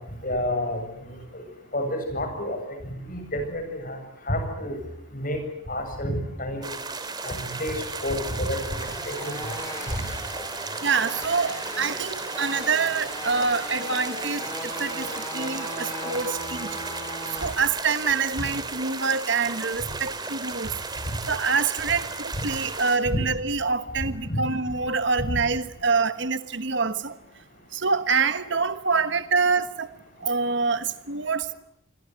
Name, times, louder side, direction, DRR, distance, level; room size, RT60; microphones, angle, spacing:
voice 1, 0.2-1.4 1.7-2.6 3.1-4.0 4.3-4.8 5.1-5.4 5.7-6.7 7.2-9.4 23.1-23.2 24.3-24.4 25.3-25.4, left 1 dB, 40° left, 7.8 m, -29 dB
sound 1, 6.6-23.0, right 4 dB, 20° right, 3.0 m, -35 dB
sound 2, 8.7-17.5, equal, 15° left, 6.2 m, -37 dB
voice 2, 10.8-16.7 17.4-20.8 21.3-27.2 27.7-29.9 30.2-31.5, right 4 dB, 55° right, 1.3 m, -26 dB
28.5 x 22.0 x 9.5 m
head